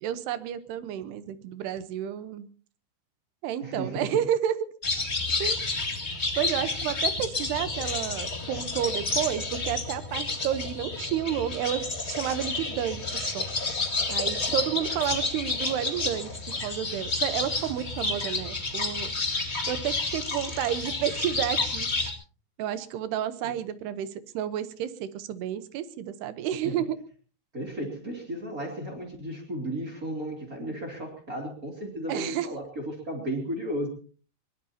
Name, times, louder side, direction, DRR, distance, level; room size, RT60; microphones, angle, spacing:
voice 1, 0.0-2.5 3.4-4.6 5.4-5.6 6.4-13.5 14.1-19.4 19.7-21.9 22.6-27.0 32.1-32.5, right 10 dB, 75° right, 13 dB, 2.9 m, -31 dB
voice 2, 3.6-4.1 23.4-23.5 26.6-26.8 27.5-33.9, right 1 dB, 25° right, 1 dB, 2.6 m, -34 dB
sound 1, 4.8-22.1, left 3 dB, 35° left, 1.0 m, -30 dB
22.5 x 22.0 x 2.8 m, 0.40 s
omnidirectional pair, 5.0 m